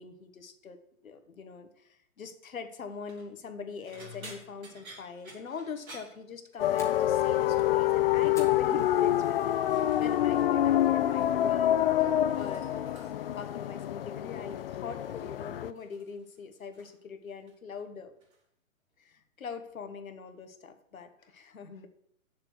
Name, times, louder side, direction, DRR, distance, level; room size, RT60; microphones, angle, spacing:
voice 1, 0.0-13.0 13.4-18.1 19.0-21.9, left 5 dB, 75° left, 9 dB, 1.4 m, -43 dB
sound 1, 2.9-3.3 3.9-6.9 7.2-7.5 7.9-8.4 9.1-10.5 10.7-11.6 11.9-13.4 14.3-14.6 15.0-17.0 17.3-17.8 18.2-18.4 19.7-19.8, right 2 dB, 80° right, 3.9 m, -53 dB
Fire, 6.2-9.7 10.1-10.5 10.9-11.0 11.6-11.9, left 2 dB, 5° left, 1.2 m, -51 dB
sound 2, 6.6-15.7, left 12 dB, 45° left, 0.4 m, -27 dB
7.6 x 6.9 x 6.1 m, 0.74 s
hypercardioid pair, 125°, 41 cm